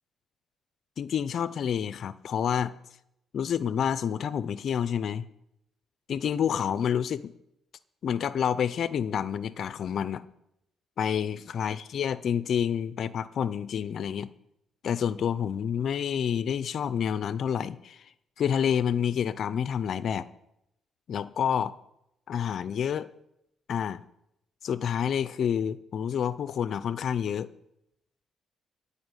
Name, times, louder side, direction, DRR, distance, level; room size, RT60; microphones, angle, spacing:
voice 1, 1.0-2.7 3.3-5.3 6.1-7.3 8.0-10.2 11.0-14.3 14.8-18.1 18.4-20.3 21.1-21.7 22.3-23.1 23.7-24.0 24.6-27.5, left 8 dB, 60° left, 16 dB, 0.5 m, -28 dB
15.5 x 5.6 x 9.8 m, 0.81 s
cardioid pair, 90°, 0 cm